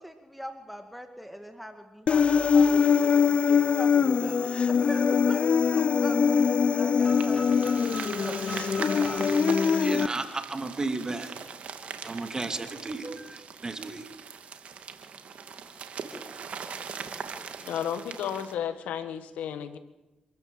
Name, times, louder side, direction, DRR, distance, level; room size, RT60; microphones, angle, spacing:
voice 1, 0.0-2.2 2.5-7.6 8.0-9.3, equal, ahead, 6 dB, 2.3 m, -42 dB
Human voice, 2.1-10.1, left 6 dB, 55° left, 0.6 m, -23 dB
sound 1, 7.0-10.9, left 2 dB, 30° left, 4.8 m, -43 dB
sound 2, 7.1-18.5, right 6 dB, 65° right, 2.3 m, -40 dB
voice 2, 9.8-11.3 12.0-14.0, right 3 dB, 30° right, 7 dB, 2.6 m, -34 dB
voice 3, 17.6-19.8, left 9 dB, 85° left, 11 dB, 1.5 m, -33 dB
27.0 x 14.0 x 7.8 m, 1.0 s
supercardioid pair, 60°, 2 cm